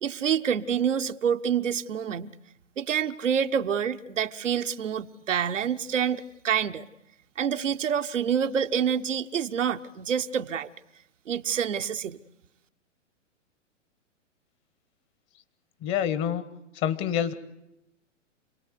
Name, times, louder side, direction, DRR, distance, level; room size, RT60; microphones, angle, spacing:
voice 1, 0.0-2.3 2.8-6.8 7.4-10.7 11.3-12.2, right 8 dB, 75° right, 1.0 m, -27 dB
voice 2, 15.8-16.4 16.7-17.3, left 9 dB, 30° left, 1.4 m, -27 dB
27.5 x 18.5 x 8.2 m
figure-of-eight pair, 115°, 38 cm